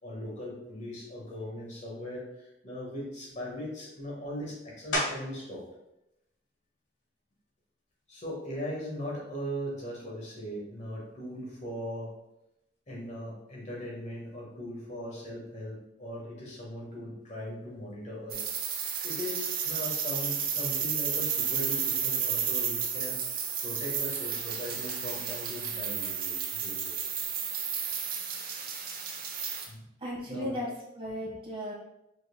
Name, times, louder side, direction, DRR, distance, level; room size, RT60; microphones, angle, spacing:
voice 1, 0.0-5.6 8.1-12.1 12.9-18.4 18.7-23.2 23.6-27.0 29.7-29.8 30.3-30.5, equal, 40° left, -4 dB, 1.6 m, -39 dB
sound 1, 4.9-5.5 6.1-10.5 11.0-16.2 16.5-22.1, left 1 dB, 80° left, 1.5 m, -42 dB
sound 2, 18.3-29.7, right 7 dB, 55° right, 0.8 m, -32 dB
voice 2, 30.0-31.7, equal, 30° right, -5 dB, 1.6 m, -36 dB
5.1 x 4.5 x 2.3 m, 0.89 s
head